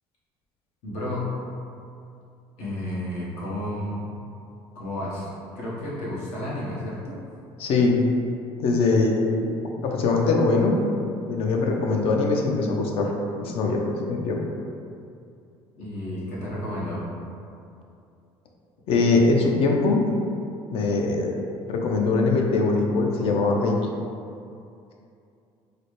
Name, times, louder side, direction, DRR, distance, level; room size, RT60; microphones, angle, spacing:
voice 1, 0.8-1.4 2.6-4.1 4.7-5.3 5.5-7.2 15.8-17.0, left 1 dB, 80° left, -6 dB, 1.1 m, -31 dB
voice 2, 7.6-8.0 8.6-9.5 9.8-10.8 11.3-13.1 13.4-14.4 18.9-20.0 20.7-21.4 21.7-23.9, left 3 dB, 60° left, 1 dB, 0.5 m, -22 dB
4.0 x 2.1 x 3.1 m, 2.5 s
cardioid pair, 115°, 11 cm